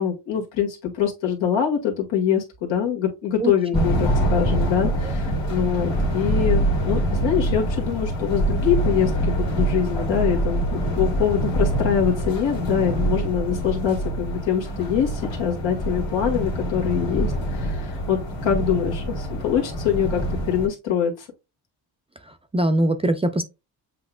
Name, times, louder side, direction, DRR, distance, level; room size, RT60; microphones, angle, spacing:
voice 1, 0.0-20.2 20.5-21.3, left 8 dB, 85° left, 1.8 m, -24 dB
voice 2, 3.4-3.9 5.0-5.1 22.3-23.4, right 1 dB, 15° right, 0.4 m, -23 dB
sound 1, 3.7-20.7, right 1 dB, 70° left, 2.1 m, -25 dB
7.6 x 2.8 x 2.3 m
cardioid pair, 110°, 44 cm